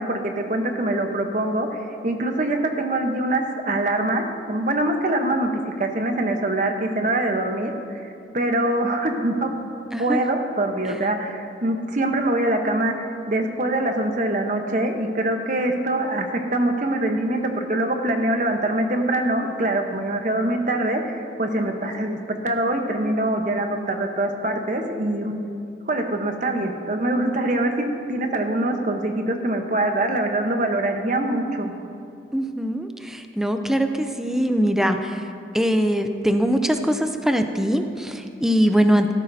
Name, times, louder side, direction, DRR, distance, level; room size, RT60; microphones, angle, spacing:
voice 1, 0.0-1.7 2.0-5.5 5.8-8.0 8.3-9.5 10.0-12.9 13.3-25.3 25.9-31.7, right 1 dB, 45° right, 4 dB, 1.0 m, -24 dB
voice 2, 32.3-35.3 35.5-39.1, equal, 5° right, 6 dB, 0.5 m, -22 dB
16.5 x 13.5 x 2.7 m, 2.6 s
head